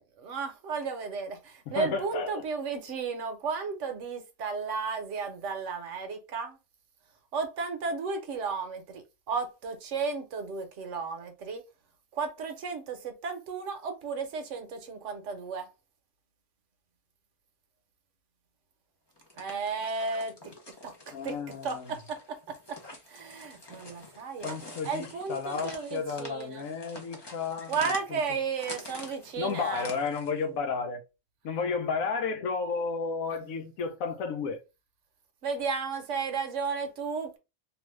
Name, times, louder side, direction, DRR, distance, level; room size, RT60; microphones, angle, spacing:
voice 1, 0.2-6.6 7.3-11.6 12.1-15.7 19.4-20.5 20.8-21.4 21.6-22.8 23.1-24.6 24.8-26.7 27.7-29.9 33.3-33.4 35.4-37.4, right 5 dB, 65° right, 1.0 m, -34 dB
voice 2, 1.8-2.4 21.1-21.8 24.4-27.9 29.4-31.0 31.4-34.6, left 5 dB, 75° left, 1.0 m, -32 dB
sound 1, 19.1-30.4, left 2 dB, 40° left, 0.3 m, -47 dB
2.7 x 2.5 x 3.0 m
omnidirectional pair, 1.5 m